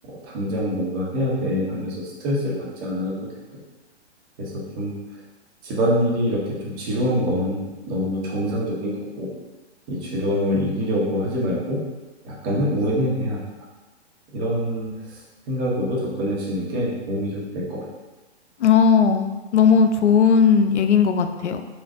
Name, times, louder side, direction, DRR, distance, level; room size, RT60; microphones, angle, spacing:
voice 1, 0.2-3.1 3.5-3.6 4.4-4.9 5.6-9.3 9.9-11.8 12.2-13.4 14.3-15.2 15.5-17.8, equal, 30° right, -5 dB, 1.1 m, -25 dB
voice 2, 18.6-21.6, left 6 dB, 80° left, 7 dB, 0.5 m, -17 dB
4.1 x 2.5 x 3.7 m, 1.1 s
hypercardioid pair, 125°, 34 cm